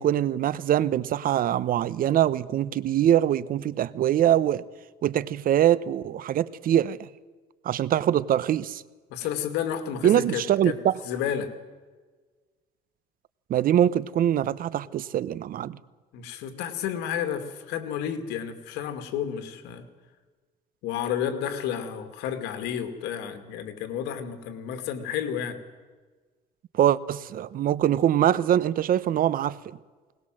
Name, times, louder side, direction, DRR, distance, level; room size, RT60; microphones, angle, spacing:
voice 1, 0.0-4.6 5.0-7.1 7.6-8.8 10.0-10.9 13.5-15.8 26.7-29.6, right 11 dB, 55° right, 19 dB, 0.9 m, -23 dB
voice 2, 9.1-10.8 11.0-11.5 16.1-19.9 20.8-25.6, left 9 dB, 90° left, 9 dB, 2.3 m, -31 dB
21.0 x 19.5 x 7.7 m, 1.4 s
cardioid pair, 110°, 17 cm